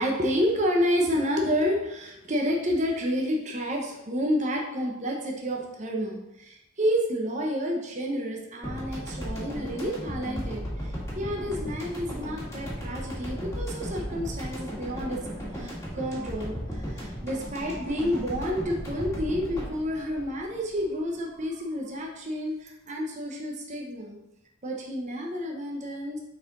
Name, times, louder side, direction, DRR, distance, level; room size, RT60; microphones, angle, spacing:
voice 1, 0.0-15.2 15.5-24.2 24.6-26.2, equal, 35° right, -1 dB, 1.0 m, -29 dB
sound 1, 8.6-21.1, equal, 15° left, 1.8 m, -36 dB
6.6 x 4.5 x 4.0 m, 0.90 s
head